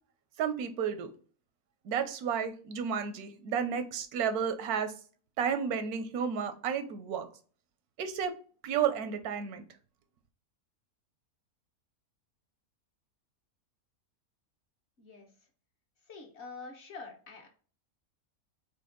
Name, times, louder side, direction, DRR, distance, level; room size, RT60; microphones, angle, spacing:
voice 1, 0.4-1.1 1.8-4.9 5.4-7.3 8.0-8.3 8.6-9.6, right 7 dB, 85° right, 9 dB, 1.1 m, -32 dB
voice 2, 15.0-15.3 16.0-17.5, left 4 dB, 50° left, 1 dB, 1.2 m, -46 dB
4.3 x 3.0 x 3.8 m, 0.42 s
omnidirectional pair, 1.5 m